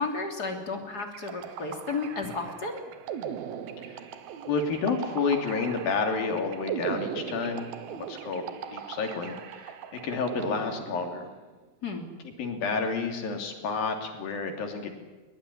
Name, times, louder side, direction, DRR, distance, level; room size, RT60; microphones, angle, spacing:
voice 1, 0.0-2.8 11.8-12.0, left 4 dB, 25° left, 3 dB, 3.4 m, -33 dB
sound 1, 1.0-11.4, right 8 dB, 90° right, 3.3 m, -39 dB
voice 2, 4.5-8.4 8.7-9.7 10.0-11.3 12.4-15.0, left 4 dB, 75° left, 4 dB, 4.9 m, -30 dB
22.0 x 21.5 x 10.0 m, 1.3 s
omnidirectional pair, 4.1 m